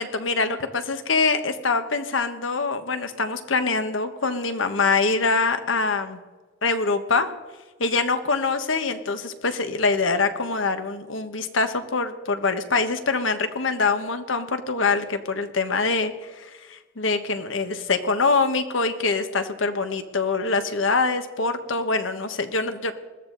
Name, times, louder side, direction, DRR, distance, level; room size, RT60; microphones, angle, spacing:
voice 1, 0.0-6.2 6.6-7.3 7.8-22.9, left 4 dB, 90° left, 8 dB, 1.3 m, -24 dB
20.5 x 14.5 x 4.0 m, 1.3 s
head